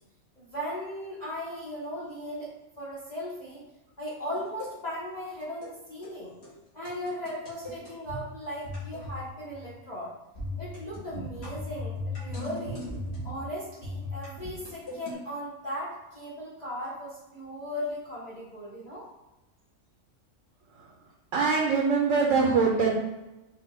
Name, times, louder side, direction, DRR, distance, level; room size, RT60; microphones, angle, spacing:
voice 1, 0.4-2.5 2.8-3.6 4.0-6.3 6.7-10.1 10.6-12.8 13.2-19.1, equal, 35° left, -7 dB, 1.0 m, -37 dB
sound 1, 4.4-4.7 5.4-5.7 6.0-6.2 6.4-6.5 6.9-8.2 8.6-9.2 9.5-9.8 10.4-13.4 13.8-15.1, left 2 dB, 55° left, 2.1 m, -37 dB
voice 2, 21.3-22.9, right 5 dB, 75° right, -2 dB, 1.1 m, -23 dB
5.7 x 2.6 x 3.5 m, 1.0 s
omnidirectional pair, 1.4 m